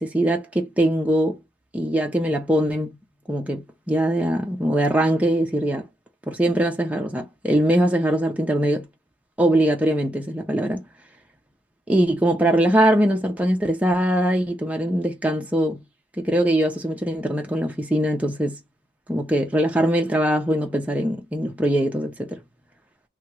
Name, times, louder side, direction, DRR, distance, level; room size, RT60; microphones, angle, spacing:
voice 1, 0.0-1.4 1.7-3.0 3.3-5.9 6.3-8.9 9.4-10.8 11.9-15.8 16.2-18.6 19.1-22.4, right 1 dB, 10° right, 0.5 m, -22 dB
3.0 x 2.2 x 2.9 m
head